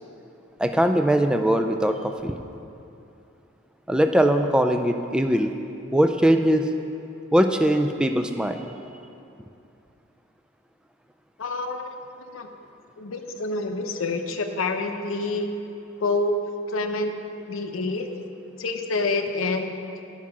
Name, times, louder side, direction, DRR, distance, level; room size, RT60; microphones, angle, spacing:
voice 1, 0.6-2.4 3.9-5.5 5.9-6.7 7.3-8.7, equal, 5° right, 6 dB, 0.3 m, -21 dB
voice 2, 11.4-11.9 12.3-12.5 13.0-15.5 16.0-16.3 16.7-17.1 17.5-18.1 18.6-19.7, left 3 dB, 90° left, 5 dB, 0.7 m, -27 dB
9.6 x 5.6 x 6.0 m, 2.7 s
head